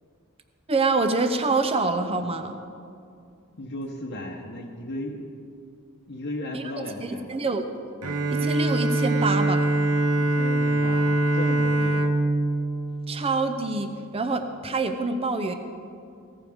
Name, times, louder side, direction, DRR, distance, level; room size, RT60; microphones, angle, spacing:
voice 1, 0.7-2.5 6.5-6.6 7.0-7.7 8.3-9.7 13.1-15.5, right 3 dB, 25° right, 7 dB, 0.6 m, -26 dB
voice 2, 3.6-5.2 6.1-7.3 10.2-12.0, left 1 dB, 50° left, -1 dB, 1.0 m, -35 dB
Bowed string instrument, 8.0-13.9, right 2 dB, 75° right, 1.0 m, -24 dB
16.5 x 14.5 x 3.6 m, 2.4 s
head